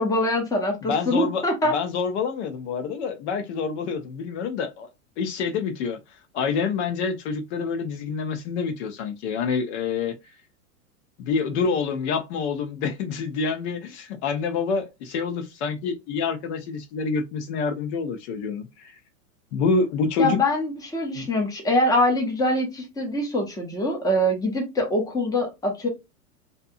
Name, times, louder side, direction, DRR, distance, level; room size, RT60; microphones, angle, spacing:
voice 1, 0.0-1.7 20.2-25.9, left 1 dB, 10° left, 0.8 m, -24 dB
voice 2, 0.8-4.9 5.2-6.0 6.3-10.1 11.2-18.9 19.5-20.4 21.1-21.3, left 5 dB, 50° left, 0.7 m, -27 dB
2.7 x 2.2 x 2.6 m
hypercardioid pair, 110°, 43 cm